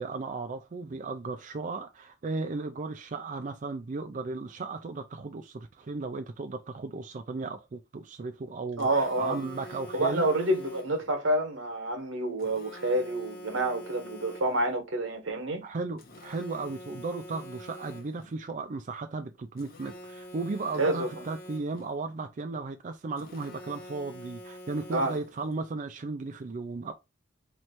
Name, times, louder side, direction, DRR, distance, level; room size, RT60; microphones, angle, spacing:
voice 1, 0.0-10.3 15.6-26.9, right 3 dB, 40° right, 0.4 m, -35 dB
Telephone, 8.8-11.1 12.4-14.8 16.0-18.3 19.6-22.0 23.2-25.5, equal, 50° left, 1.0 m, -46 dB
voice 2, 8.8-9.4 9.9-15.6 20.8-21.1 24.9-25.2, right 1 dB, 85° right, 1.4 m, -28 dB
3.1 x 3.1 x 4.2 m
head